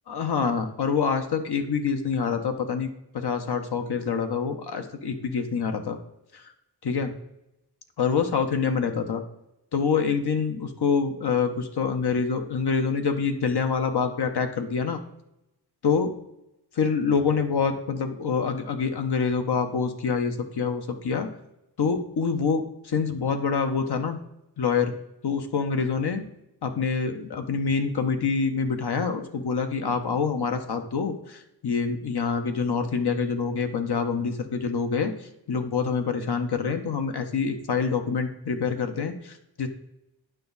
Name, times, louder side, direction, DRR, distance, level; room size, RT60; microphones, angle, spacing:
voice 1, 0.1-2.9 3.1-6.0 6.8-7.1 8.0-9.2 9.7-15.0 15.8-16.1 16.8-21.3 21.8-24.2 24.6-24.9 25.2-26.2 26.6-35.1 35.5-39.7, left 5 dB, 75° left, 6 dB, 1.0 m, -26 dB
9.2 x 5.9 x 4.0 m, 0.87 s
wide cardioid pair, 100°, 40 cm